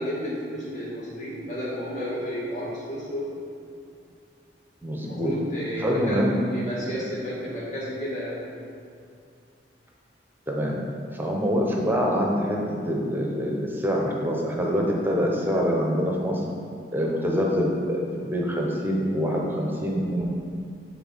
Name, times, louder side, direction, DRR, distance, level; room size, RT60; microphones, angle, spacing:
voice 1, 0.0-3.3 5.0-8.4, equal, 45° left, -7 dB, 1.7 m, -32 dB
voice 2, 4.8-5.3 5.8-6.4 10.5-10.9 11.1-16.4 16.9-20.3, equal, 10° right, -1 dB, 0.8 m, -25 dB
6.9 x 3.7 x 5.5 m, 2.4 s
head